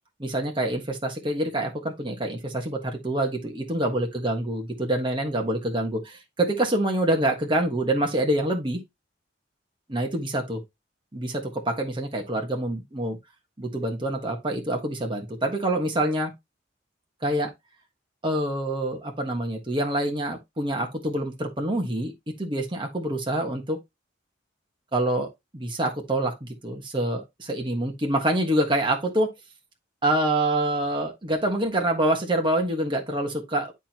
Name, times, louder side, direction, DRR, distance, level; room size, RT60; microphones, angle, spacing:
voice 1, 0.2-8.8 9.9-10.6 11.1-13.2 13.6-16.3 17.2-17.5 18.2-23.8 24.9-29.3 30.0-33.7, right 1 dB, 25° right, 1.4 m, -26 dB
9.9 x 4.4 x 2.9 m
head